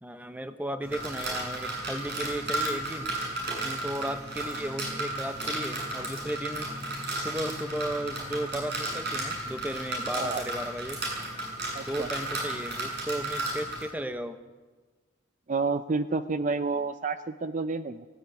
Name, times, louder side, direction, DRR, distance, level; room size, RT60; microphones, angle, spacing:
voice 1, 0.0-3.1 3.6-6.7 7.1-11.0 11.9-14.4, right 1 dB, 10° right, 9 dB, 1.0 m, -35 dB
sound 1, 0.8-13.8, right 1 dB, 55° right, 7.8 m, -34 dB
voice 2, 11.7-12.1 15.5-18.1, right 4 dB, 40° right, 11 dB, 0.6 m, -29 dB
17.5 x 17.0 x 9.2 m, 1.3 s
head